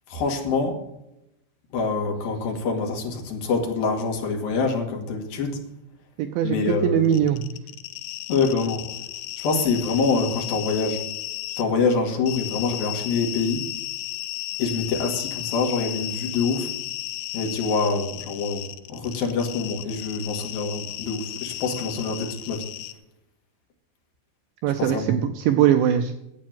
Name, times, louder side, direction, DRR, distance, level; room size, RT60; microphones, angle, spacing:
voice 1, 0.1-0.8 1.7-5.6 6.4-7.1 8.3-8.9 9.4-11.0 11.6-13.6 14.6-16.7 17.3-22.6 24.8-25.1, left 4 dB, 55° left, 2 dB, 3.3 m, -25 dB
voice 2, 6.2-7.5 24.6-26.1, right 10 dB, 80° right, 7 dB, 2.7 m, -21 dB
sound 1, 7.1-11.6 12.3-22.9, left 15 dB, 80° left, 2.9 m, -34 dB
12.5 x 8.6 x 7.5 m, 0.86 s
omnidirectional pair, 5.9 m